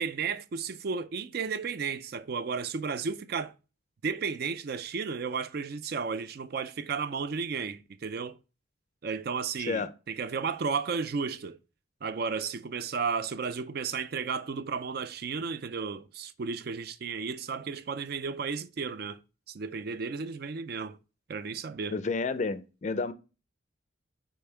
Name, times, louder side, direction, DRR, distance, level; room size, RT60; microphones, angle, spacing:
voice 1, 0.0-3.5 4.0-8.4 9.0-11.6 12.0-19.2 19.5-21.0 21.3-22.0, right 5 dB, 50° right, 0.4 m, -33 dB
voice 2, 9.6-9.9 21.9-23.1, left 4 dB, 35° left, 0.4 m, -30 dB
5.4 x 4.3 x 4.4 m
head